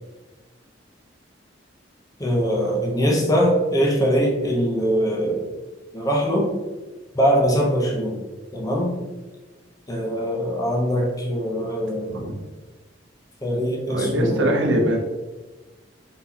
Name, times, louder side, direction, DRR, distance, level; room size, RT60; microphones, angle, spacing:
voice 1, 2.2-5.5 5.9-6.6 7.1-8.2 8.5-9.0 9.9-12.3 13.4-14.8, equal, 20° left, -2 dB, 0.7 m, -22 dB
voice 2, 13.9-15.0, right 1 dB, 85° right, 1 dB, 0.8 m, -22 dB
4.0 x 3.7 x 2.8 m, 1.2 s
head